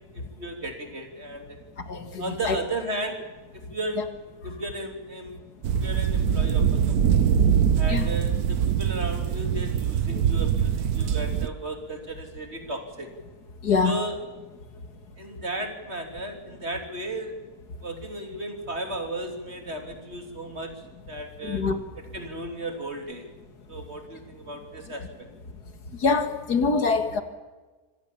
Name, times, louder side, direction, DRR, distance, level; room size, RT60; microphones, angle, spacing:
voice 1, 0.1-1.6 2.2-3.2 3.5-4.1 4.4-5.4 5.8-7.3 7.8-13.1 13.8-14.2 15.2-17.4 17.8-20.7 21.1-21.6 22.1-23.3 23.7-25.3, right 1 dB, 40° right, 5 dB, 3.5 m, -35 dB
voice 2, 1.9-2.6 7.9-8.1 13.6-14.0 21.4-21.8 26.0-27.2, left 4 dB, 80° left, 9 dB, 2.6 m, -24 dB
sound 1, 5.6-11.5, right 8 dB, 70° right, 1.4 m, -23 dB
25.5 x 17.5 x 7.3 m, 1.3 s
omnidirectional pair, 1.7 m